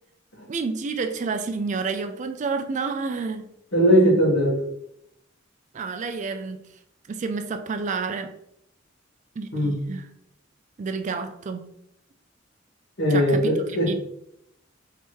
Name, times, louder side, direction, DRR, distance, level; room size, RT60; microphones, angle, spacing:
voice 1, 0.5-3.5 5.7-6.7 7.1-8.3 9.4-10.1 10.8-11.7 13.1-14.0, right 4 dB, 40° right, 7 dB, 0.3 m, -30 dB
voice 2, 3.7-4.5 9.5-9.8 13.0-13.9, equal, 60° left, -2 dB, 1.6 m, -19 dB
3.3 x 3.1 x 4.4 m, 0.76 s
head